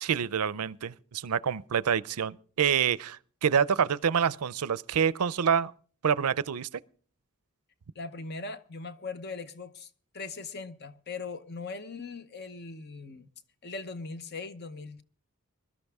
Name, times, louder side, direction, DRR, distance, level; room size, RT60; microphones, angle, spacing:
voice 1, 0.0-5.7 6.0-6.7, right 7 dB, 85° right, 0.5 m, -27 dB
voice 2, 7.9-9.9 10.1-13.3 13.6-15.0, left 4 dB, 45° left, 0.9 m, -40 dB
21.0 x 12.5 x 3.5 m
head